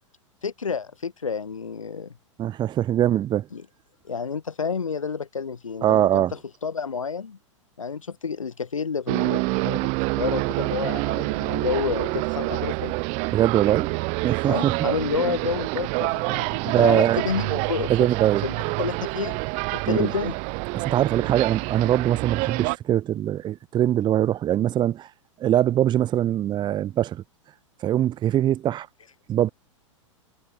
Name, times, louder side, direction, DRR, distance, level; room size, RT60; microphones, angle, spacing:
voice 1, 0.4-2.1 3.5-3.6 4.1-7.4 7.8-9.8 10.2-12.9 14.5-18.1 18.4-19.4 19.7-20.3, left 5 dB, 85° left, 6.8 m, -29 dB
voice 2, 2.4-3.5 5.8-6.3 13.3-13.9 14.2-14.8 16.6-17.2 17.9-18.4 19.9-20.1 20.7-25.1 25.4-27.2 27.8-28.9 29.3-29.5, right 12 dB, 25° right, 1.2 m, -22 dB
sound 1, 9.1-22.8, right 31 dB, 45° right, 5.3 m, -27 dB
hypercardioid pair, 100°, 16 cm